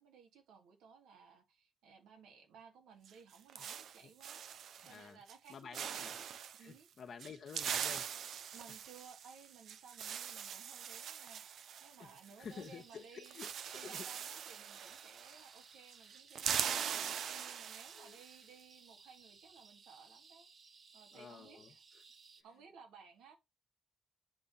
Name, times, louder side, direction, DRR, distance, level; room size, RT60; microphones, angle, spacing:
voice 1, 0.0-6.1 6.6-6.9 8.5-13.4 13.7-20.5 20.9-21.8 22.4-23.4, right 6 dB, 85° right, 2.7 m, -59 dB
sound 1, 3.0-5.0 5.3-5.5 5.7-6.6 7.2-12.7 12.9-13.0 13.2-15.6 15.9-18.3, right 8 dB, 65° right, 0.7 m, -42 dB
voice 2, 4.8-5.2 5.5-6.1 6.6-8.3 12.0-12.1 12.4-13.5 13.8-14.1 17.9-18.2 21.1-22.0, left 6 dB, 55° left, 1.4 m, -51 dB
sound 2, 12.5-22.4, right 5 dB, 45° right, 1.3 m, -61 dB
10.0 x 3.5 x 5.7 m
cardioid pair, 90°, 0 cm